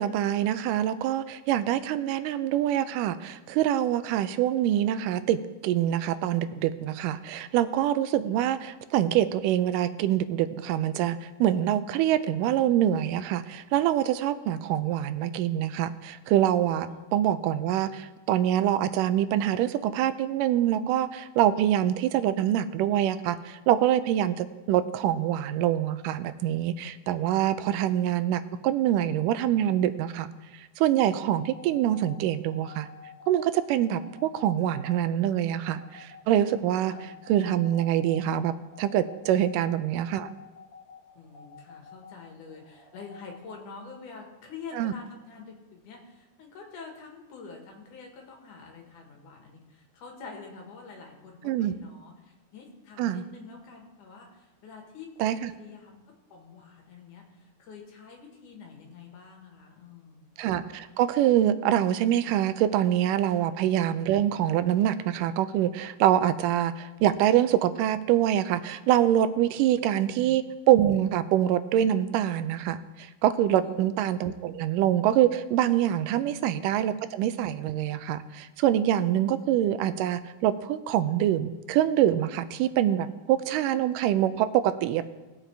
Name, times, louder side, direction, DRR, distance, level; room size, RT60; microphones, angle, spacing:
voice 1, 0.0-30.3 30.8-32.9 33.3-36.9 37.3-38.5 38.8-40.3 44.7-44.9 51.4-51.7 53.0-53.2 55.2-55.5 60.4-85.1, right 11 dB, 85° right, 12 dB, 2.2 m, -25 dB
voice 2, 16.9-17.2 27.6-27.9 36.8-37.1 39.4-39.6 41.2-56.0 56.3-60.2 63.3-63.5 69.5-69.8 70.1-70.2 73.5-73.9 76.2-76.4, left 5 dB, 75° left, 1 dB, 3.0 m, -46 dB
sound 1, 31.4-43.4, left 5 dB, 30° left, 4.6 m, -51 dB
18.5 x 7.2 x 3.3 m, 1.1 s
omnidirectional pair, 3.7 m